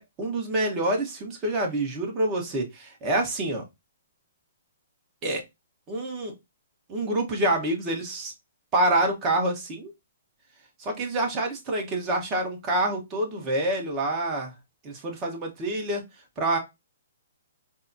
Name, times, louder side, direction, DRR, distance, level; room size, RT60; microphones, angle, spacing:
voice 1, 0.0-3.6 5.2-5.4 5.9-6.3 6.9-8.3 8.7-9.9 10.8-14.5 14.8-16.0 16.4-16.6, right 1 dB, 25° right, 1.0 m, -27 dB
4.0 x 2.1 x 2.6 m
hypercardioid pair, 150°, 0 cm